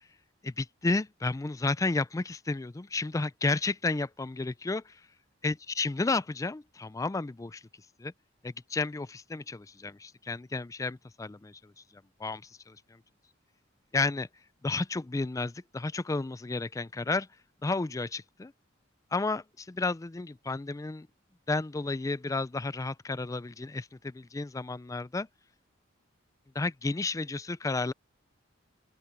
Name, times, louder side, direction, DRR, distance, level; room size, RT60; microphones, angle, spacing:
voice 1, 0.4-5.0 5.4-7.6 8.0-8.1 8.4-11.7 12.2-13.0 13.9-14.3 14.6-17.3 17.6-18.5 19.1-21.1 21.5-25.3 26.5-27.9, left 3 dB, 15° left, 0.4 m, -32 dB
open air
head